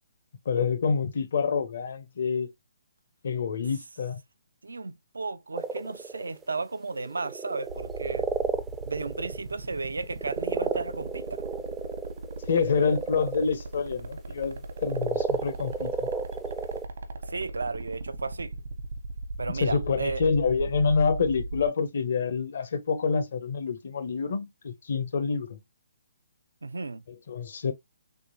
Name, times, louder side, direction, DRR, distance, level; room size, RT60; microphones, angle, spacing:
voice 1, 0.5-2.5 3.2-4.2 12.5-16.1 19.6-25.6 27.1-27.7, left 5 dB, 60° left, 0.9 m, -27 dB
voice 2, 4.6-8.3 8.8-11.4 17.3-18.5 19.4-20.2 26.6-27.0, right 3 dB, 85° right, 0.4 m, -34 dB
sound 1, 5.5-6.6 6.9-13.5 14.7-16.8, right 5 dB, 10° right, 0.4 m, -32 dB
sound 2, 7.7-21.7, right 3 dB, 70° right, 1.0 m, -37 dB
3.6 x 3.0 x 2.8 m
hypercardioid pair, 145°, 0 cm